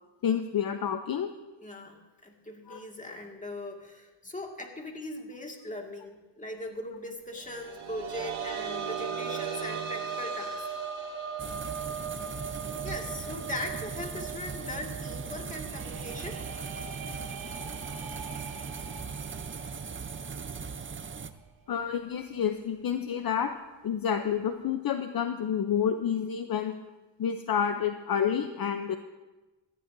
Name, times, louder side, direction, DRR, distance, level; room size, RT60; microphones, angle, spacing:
voice 1, 0.2-1.3 2.7-2.8 21.7-23.5 23.8-26.8 27.2-29.0, left 8 dB, 50° left, 8 dB, 0.7 m, -29 dB
voice 2, 1.6-10.7 12.8-16.4 19.1-19.3, left 1 dB, 15° left, 1 dB, 2.0 m, -40 dB
sound 1, 7.5-18.9 19.3-19.4 20.9-21.0, right 6 dB, 85° right, 1.7 m, -38 dB
sound 2, 11.4-21.3, right 5 dB, 25° right, 0.6 m, -39 dB
sound 3, 15.6-21.4, right 4 dB, 45° right, 1.1 m, -46 dB
19.0 x 14.0 x 2.7 m, 1.1 s
cardioid pair, 100°, 46 cm